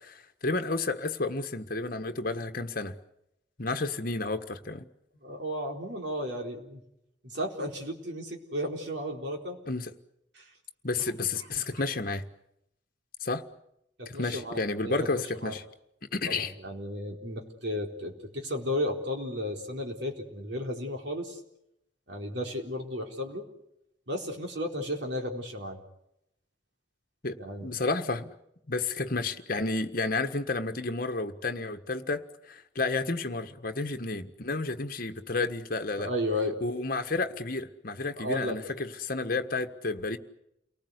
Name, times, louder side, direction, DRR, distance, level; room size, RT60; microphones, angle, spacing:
voice 1, 0.0-3.0 3.6-4.9 9.7-9.9 10.8-12.2 13.2-13.4 14.0-15.6 16.1-16.5 27.2-28.3 28.7-36.1 36.6-40.2, left 3 dB, 50° left, 1.5 m, -31 dB
voice 2, 5.2-6.8 7.2-9.6 10.3-10.5 11.5-11.6 14.0-15.0 15.4-15.5 16.3-21.4 22.1-23.5 24.1-25.8 27.4-27.7 36.0-36.6 38.2-38.6, left 1 dB, 65° right, 4.2 m, -34 dB
29.0 x 19.5 x 8.2 m
head